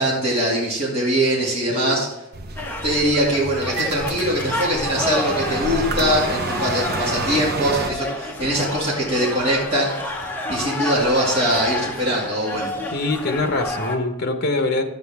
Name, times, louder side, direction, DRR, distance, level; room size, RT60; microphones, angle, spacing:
voice 1, 0.0-2.1 2.8-10.0 10.5-12.7, equal, 25° right, -6 dB, 2.1 m, -22 dB
voice 2, 1.7-2.1 12.9-14.8, left 2 dB, 45° left, 5 dB, 1.0 m, -23 dB
sound 1, 2.3-7.9, right 3 dB, 45° right, 0.7 m, -29 dB
sound 2, 2.6-14.0, left 2 dB, 10° left, 0.8 m, -30 dB
11.0 x 7.9 x 3.5 m, 0.93 s
head